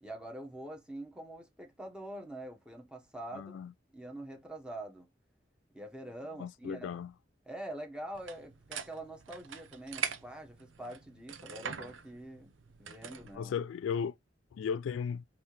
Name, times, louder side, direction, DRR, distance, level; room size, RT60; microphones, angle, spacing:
voice 1, 0.0-3.6 3.9-5.1 5.7-7.0 7.4-12.5 12.8-13.6, right 1 dB, 5° right, 1.1 m, -45 dB
voice 2, 3.3-3.7 6.4-7.1 13.3-14.1 14.5-15.3, left 7 dB, 85° left, 0.3 m, -35 dB
sound 1, 8.1-13.4, right 7 dB, 90° right, 0.7 m, -43 dB
5.5 x 2.7 x 3.0 m
head